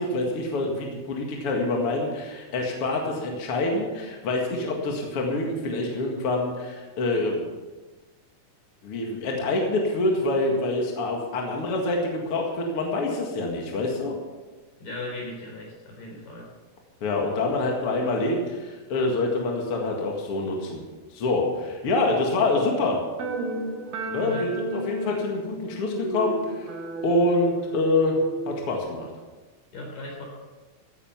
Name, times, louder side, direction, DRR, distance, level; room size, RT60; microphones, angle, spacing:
voice 1, 0.0-7.5 8.8-14.2 17.0-20.8 21.1-23.0 24.1-26.7 27.0-28.2 28.5-29.1, left 2 dB, 45° left, 0 dB, 2.3 m, -26 dB
voice 2, 14.8-16.5 24.2-24.5 29.7-30.2, left 2 dB, 65° left, -1 dB, 5.9 m, -37 dB
sound 1, 23.2-28.8, right 2 dB, 60° right, 2.5 m, -33 dB
15.5 x 9.9 x 5.8 m, 1.3 s
omnidirectional pair, 4.3 m